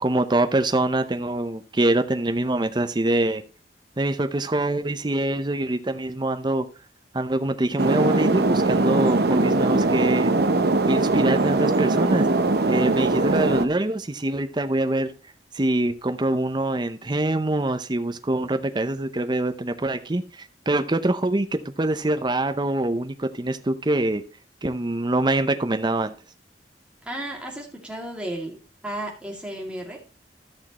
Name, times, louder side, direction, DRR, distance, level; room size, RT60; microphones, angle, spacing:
voice 1, 0.0-3.4 4.0-6.7 7.1-10.3 10.9-12.3 12.7-15.1 15.5-24.2 24.6-26.1, right 2 dB, 25° right, 0.7 m, -24 dB
sound 1, 7.8-13.7, right 2 dB, 60° right, 0.8 m, -21 dB
voice 2, 27.0-28.5 28.8-30.0, right 1 dB, 5° right, 2.3 m, -33 dB
13.0 x 6.5 x 3.0 m
head